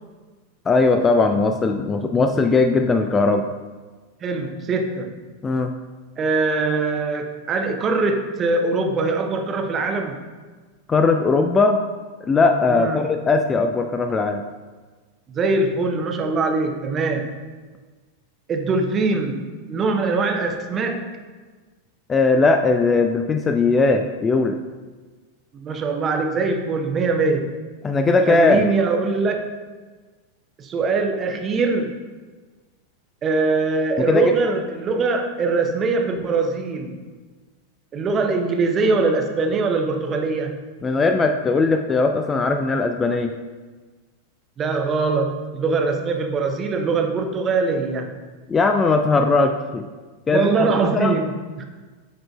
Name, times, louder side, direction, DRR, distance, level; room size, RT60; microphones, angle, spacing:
voice 1, 0.7-3.5 5.4-5.7 10.9-11.8 12.2-14.4 22.1-24.6 27.8-28.7 34.0-34.3 40.8-43.3 48.5-49.9 50.3-51.1, left 3 dB, 20° left, 6 dB, 0.3 m, -19 dB
voice 2, 4.2-5.1 6.2-10.2 12.7-13.1 15.3-17.3 18.5-21.0 25.5-27.6 28.3-29.4 30.6-31.9 33.2-37.0 37.9-40.6 44.6-48.2 50.3-51.6, right 3 dB, 25° right, 4 dB, 0.7 m, -22 dB
11.0 x 3.8 x 2.3 m, 1.4 s
figure-of-eight pair, 90°, 0 cm